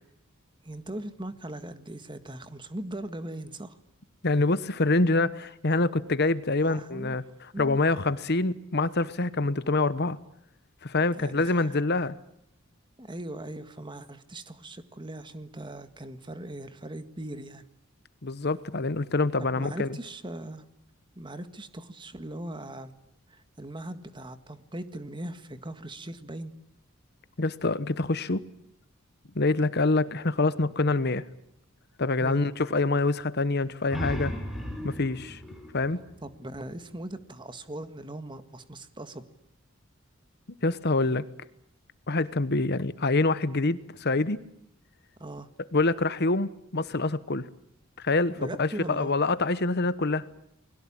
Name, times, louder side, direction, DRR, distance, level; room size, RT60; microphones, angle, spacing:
voice 1, 0.6-3.8 6.6-7.2 7.5-7.8 11.1-11.8 13.0-17.6 19.4-20.6 21.1-22.9 23.3-26.5 32.2-32.5 35.9-39.2 45.2-45.5 48.4-49.1, right 1 dB, 20° right, 10 dB, 1.7 m, -40 dB
voice 2, 4.2-7.2 7.6-10.2 10.8-12.1 18.2-19.9 27.4-28.4 29.3-31.2 32.0-34.3 34.8-35.4 35.7-36.0 40.6-41.3 42.1-44.4 45.7-47.4 48.0-50.2, left 3 dB, 50° left, 14 dB, 1.1 m, -26 dB
sound 1, 33.9-37.1, equal, ahead, 4.9 m, -37 dB
30.0 x 21.5 x 8.8 m, 0.78 s
head